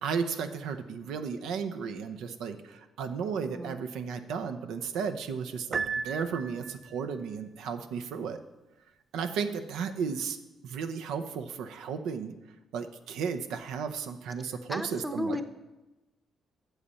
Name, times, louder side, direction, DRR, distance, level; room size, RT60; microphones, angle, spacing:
voice 1, 0.0-8.4 9.1-10.4 10.6-12.3 12.7-15.4, right 6 dB, 85° right, 8 dB, 0.6 m, -34 dB
voice 2, 3.4-3.8 14.7-15.4, left 1 dB, 5° right, 9 dB, 0.7 m, -34 dB
Piano, 5.7-7.0, right 5 dB, 40° right, 0.4 m, -34 dB
8.1 x 7.1 x 5.5 m, 1.0 s
cardioid pair, 90°, 0 cm